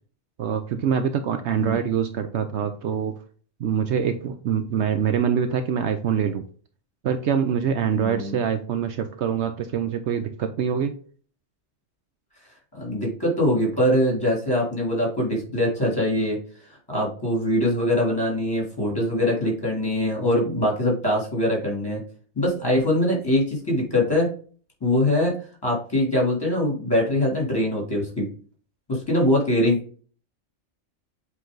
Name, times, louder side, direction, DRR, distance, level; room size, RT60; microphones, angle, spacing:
voice 1, 0.4-3.1 3.6-6.4 7.0-11.0, right 7 dB, 70° right, 8 dB, 0.9 m, -24 dB
voice 2, 7.8-8.4 12.7-16.4 16.9-22.0 22.3-24.3 24.8-25.3 25.6-28.3 28.9-29.8, left 1 dB, 20° left, -3 dB, 3.0 m, -23 dB
7.7 x 3.3 x 3.8 m, 0.42 s
omnidirectional pair, 1.3 m